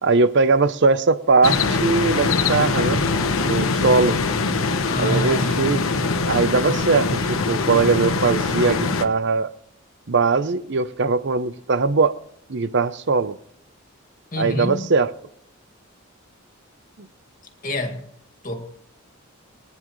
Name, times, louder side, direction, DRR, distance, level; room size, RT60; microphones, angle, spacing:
voice 1, 0.0-3.0 3.4-4.2 5.0-5.8 6.3-9.5 10.1-12.1 12.5-13.4 14.4-15.1, right 4 dB, 55° right, 0.7 m, -20 dB
sound 1, 1.4-9.0, left 4 dB, 75° left, 1.0 m, -22 dB
voice 2, 4.9-6.0 14.3-14.9 17.6-18.0 18.4-18.6, left 1 dB, 40° left, 2.1 m, -27 dB
22.5 x 9.8 x 3.2 m
head